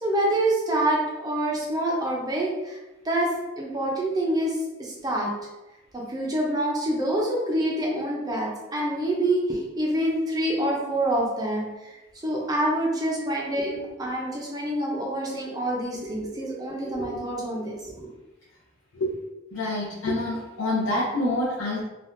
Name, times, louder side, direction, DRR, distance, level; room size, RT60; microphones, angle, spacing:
voice 1, 0.0-2.8 3.0-5.3 5.9-12.0 12.2-18.1, right 1 dB, 20° right, -3 dB, 0.5 m, -26 dB
voice 2, 19.5-21.8, left 1 dB, 80° left, -8 dB, 0.7 m, -26 dB
3.3 x 2.2 x 2.5 m, 1.0 s
head